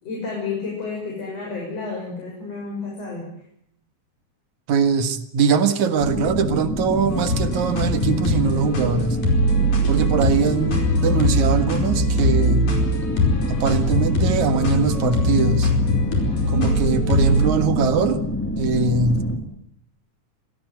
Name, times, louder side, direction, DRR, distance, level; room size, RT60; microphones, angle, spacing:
voice 1, 0.0-3.3, left 4 dB, 55° left, -2 dB, 7.8 m, -31 dB
voice 2, 4.7-9.2 9.9-12.7 13.5-15.7 16.5-18.2 18.6-19.2, right 5 dB, 70° right, 10 dB, 3.1 m, -21 dB
sound 1, 6.0-19.4, equal, 5° left, 2.5 m, -27 dB
sound 2, 7.1-17.5, left 1 dB, 75° left, 6.3 m, -22 dB
26.0 x 17.0 x 9.4 m, 0.71 s
omnidirectional pair, 3.5 m